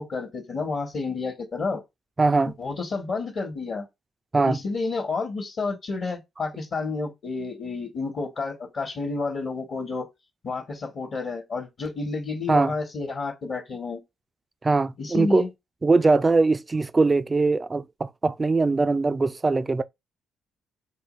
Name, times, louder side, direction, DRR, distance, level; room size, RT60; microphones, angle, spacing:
voice 1, 0.0-1.8 2.6-3.9 4.4-10.0 10.4-14.0 15.0-15.5, left 3 dB, 55° left, 1.0 m, -30 dB
voice 2, 2.2-2.5 4.3-4.6 12.5-12.7 14.6-15.4 15.8-19.8, right 3 dB, 30° right, 0.3 m, -21 dB
4.7 x 2.2 x 3.0 m
supercardioid pair, 60°, 0 cm